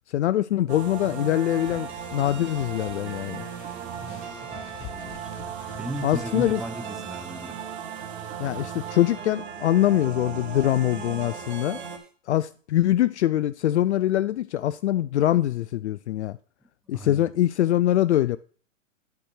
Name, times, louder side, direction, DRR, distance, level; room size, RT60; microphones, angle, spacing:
voice 1, 0.1-3.4 6.0-6.6 8.4-11.8 12.3-16.4 16.9-18.4, left 13 dB, 60° left, 0.5 m, -23 dB
sound 1, 0.7-12.0, right 7 dB, 55° right, 2.1 m, -37 dB
sound 2, 1.5-6.7, left 10 dB, 35° left, 1.4 m, -47 dB
voice 2, 4.0-5.3 5.8-7.6 16.9-17.3, right 1 dB, ahead, 0.8 m, -36 dB
10.5 x 4.3 x 6.6 m
hypercardioid pair, 125°, 38 cm